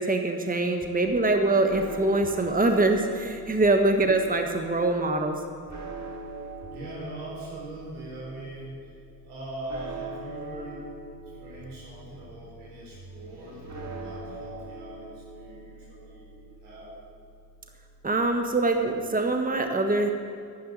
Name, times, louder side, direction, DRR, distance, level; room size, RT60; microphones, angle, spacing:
voice 1, 0.0-5.4 18.0-20.1, right 2 dB, 20° right, 4 dB, 1.5 m, -24 dB
sound 1, 1.1-19.4, right 3 dB, 35° right, 2.9 m, -44 dB
voice 2, 6.7-8.9 9.2-10.8 11.4-16.9, right 1 dB, 90° right, -5 dB, 4.4 m, -41 dB
11.0 x 9.5 x 8.1 m, 2.2 s
hypercardioid pair, 45°, 44 cm